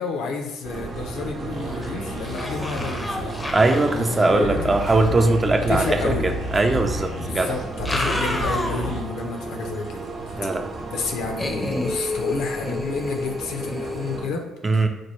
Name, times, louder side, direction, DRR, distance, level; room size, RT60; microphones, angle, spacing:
voice 1, 0.0-3.5 3.9-5.1 5.7-6.3 7.2-10.1 10.4-10.5 10.9-14.5 14.7-14.9, left 4 dB, 75° left, 3 dB, 0.5 m, -30 dB
sound 1, 0.6-14.3, right 3 dB, 50° right, 0.8 m, -34 dB
sound 2, 1.5-1.9 2.2-5.1 6.5-6.6 7.6-9.1 9.5-9.6 11.4-14.2, left 1 dB, 20° left, 0.5 m, -30 dB
sound 3, 1.5-9.0, equal, 75° right, 0.9 m, -33 dB
voice 2, 3.5-7.5 10.4-10.6 14.6-14.9, right 2 dB, 30° right, 5 dB, 0.4 m, -20 dB
4.2 x 2.2 x 3.1 m, 0.99 s
hypercardioid pair, 60°, 0 cm